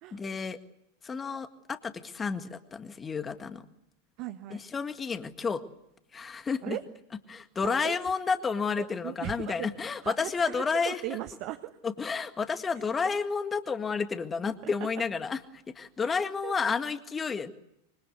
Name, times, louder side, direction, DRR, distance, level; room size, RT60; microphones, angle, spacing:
voice 1, 0.1-0.6 1.0-3.6 4.5-5.6 6.1-6.8 7.3-11.0 11.8-17.5, left 5 dB, 15° left, 10 dB, 1.8 m, -31 dB
voice 2, 4.2-4.6 6.6-6.8 7.6-8.0 8.8-9.7 10.0-11.8 14.6-14.7 16.0-16.1 16.4-16.5, right 15 dB, 40° right, 7 dB, 1.4 m, -38 dB
25.5 x 24.5 x 8.2 m, 0.81 s
figure-of-eight pair, 90°, 0 cm